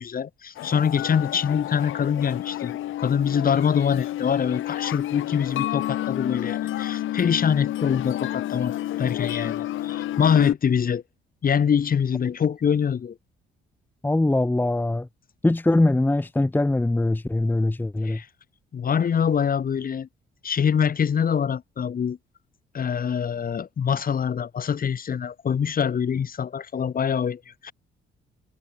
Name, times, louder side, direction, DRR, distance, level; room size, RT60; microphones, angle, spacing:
voice 1, 0.0-11.0 11.4-13.2 18.0-18.3 18.7-20.1 20.4-22.2 22.7-27.7, left 7 dB, 45° left, 1.8 m, -24 dB
sound 1, 0.6-10.6, left 14 dB, 80° left, 3.3 m, -29 dB
voice 2, 14.0-15.1 15.4-18.2, left 2 dB, 10° left, 0.8 m, -22 dB
cardioid pair, 90°, 20 cm